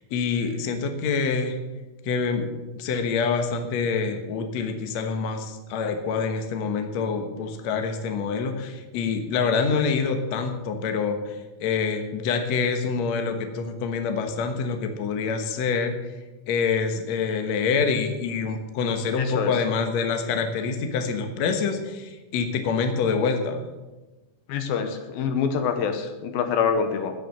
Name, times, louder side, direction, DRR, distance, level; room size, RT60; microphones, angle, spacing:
voice 1, 0.1-1.6 2.0-2.5 2.8-11.4 11.6-15.9 16.5-23.7, left 5 dB, 60° left, 6 dB, 2.1 m, -26 dB
voice 2, 19.2-19.5 24.5-27.1, left 6 dB, 75° left, 7 dB, 2.8 m, -25 dB
16.0 x 6.6 x 7.7 m, 1.1 s
omnidirectional pair, 4.3 m